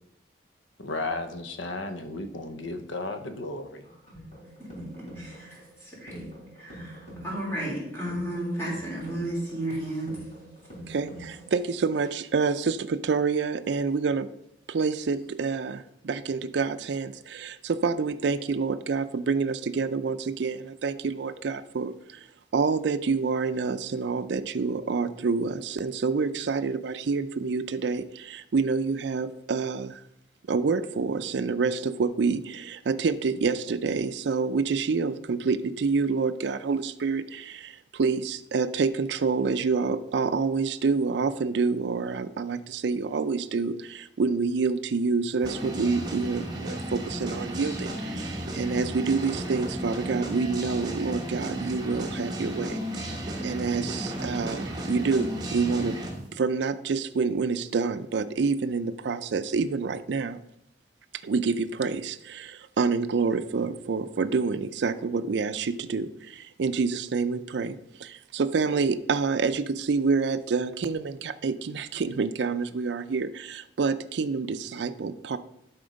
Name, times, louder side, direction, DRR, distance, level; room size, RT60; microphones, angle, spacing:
voice 1, 0.8-3.8, left 2 dB, 90° left, 8 dB, 0.8 m, -34 dB
sound 1, 3.8-11.8, equal, 35° left, 3.6 m, -45 dB
voice 2, 4.6-6.2 6.5-10.1, right 1 dB, 15° left, -5 dB, 3.4 m, -33 dB
voice 3, 10.9-14.3 14.7-22.3 22.5-30.0 30.5-56.0 56.3-60.4 61.2-75.4, right 4 dB, 70° right, 12 dB, 0.4 m, -27 dB
sound 2, 45.4-56.2, right 1 dB, 20° right, 1.1 m, -33 dB
11.5 x 4.3 x 5.1 m, 0.81 s
head